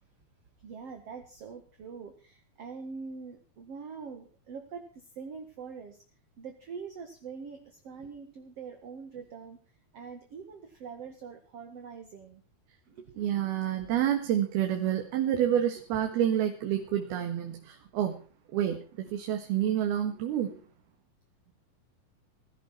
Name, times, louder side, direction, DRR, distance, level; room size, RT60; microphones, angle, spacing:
voice 1, 0.6-6.0 6.4-9.6 9.9-12.4 12.9-13.4 13.7-13.9 19.1-19.2 20.1-20.2 20.5-20.6, right 5 dB, 50° right, 4 dB, 2.4 m, -44 dB
voice 2, 13.2-18.2 18.5-18.8 19.1-20.5, right 10 dB, 80° right, 4 dB, 3.6 m, -28 dB
17.5 x 16.0 x 4.4 m, 0.37 s
omnidirectional pair, 4.4 m